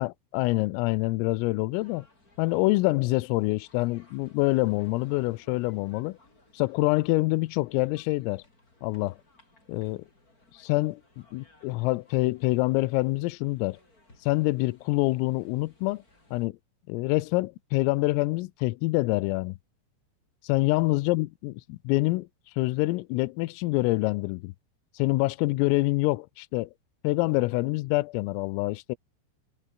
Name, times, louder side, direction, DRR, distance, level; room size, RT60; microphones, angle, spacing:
voice 1, 0.0-2.0 2.4-6.2 6.5-8.4 8.8-9.2 9.7-10.0 10.5-11.0 11.3-13.8 14.2-16.0 16.3-16.6 16.9-19.6 20.4-22.3 22.6-24.5 25.0-26.7 27.0-29.0, left 22 dB, 85° left, 3.4 m, -26 dB
sound 1, 1.7-16.5, left 2 dB, 15° left, 6.2 m, -61 dB
omnidirectional pair, 6.0 m